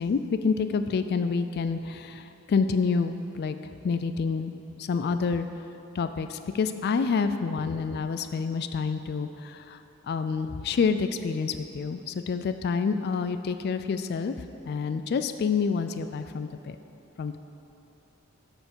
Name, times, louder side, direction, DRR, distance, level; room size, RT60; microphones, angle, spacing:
voice 1, 0.0-3.6 3.8-4.5 4.8-5.5 5.9-9.8 10.1-16.8 17.2-17.4, left 5 dB, 45° left, 9 dB, 0.3 m, -28 dB
12.0 x 4.4 x 6.9 m, 2.9 s
head